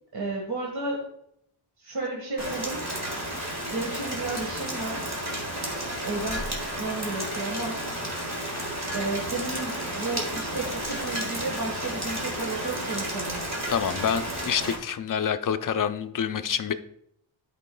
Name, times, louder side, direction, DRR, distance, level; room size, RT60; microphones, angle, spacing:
voice 1, 0.1-1.1 1.8-2.8 3.7-5.1 6.0-8.1 8.9-13.4, right 2 dB, 50° right, -2 dB, 1.6 m, -33 dB
Rain, 2.4-14.7, right 1 dB, 35° right, 1.8 m, -32 dB
voice 2, 13.7-16.7, left 7 dB, 45° left, 9 dB, 0.5 m, -27 dB
11.5 x 5.1 x 2.3 m, 0.72 s
wide cardioid pair, 100°, 49 cm